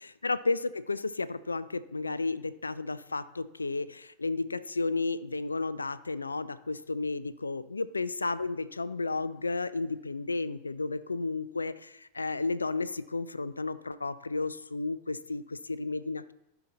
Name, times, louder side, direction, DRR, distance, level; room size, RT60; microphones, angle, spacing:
voice 1, 0.0-16.3, left 3 dB, 80° left, 15 dB, 0.4 m, -33 dB
15.0 x 5.8 x 4.0 m, 0.91 s
figure-of-eight pair, 90°, 0 cm